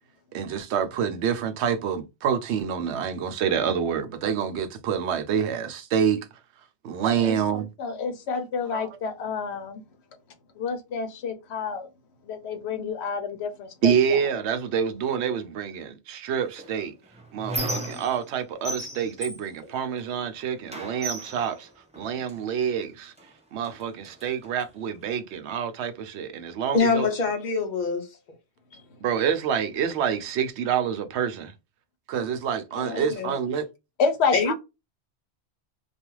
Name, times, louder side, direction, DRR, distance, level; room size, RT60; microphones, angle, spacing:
voice 1, 0.3-6.3 6.8-7.7 8.7-8.9 13.8-16.9 17.3-21.7 22.0-23.1 23.5-27.1 29.0-31.5 32.1-33.7, right 8 dB, 80° right, 0.8 m, -27 dB
voice 2, 7.8-9.8 10.6-11.9 12.3-14.0 28.7-28.8 34.0-34.5, left 5 dB, 80° left, 0.9 m, -28 dB
Squeak, 16.6-18.4 18.6-20.3 20.7-22.4 23.2-23.3 23.6-24.7, right 1 dB, 10° right, 0.5 m, -35 dB
voice 3, 26.7-28.1 32.7-33.3 34.3-34.5, left 4 dB, 50° left, 0.6 m, -25 dB
2.4 x 2.3 x 3.0 m
omnidirectional pair, 1.1 m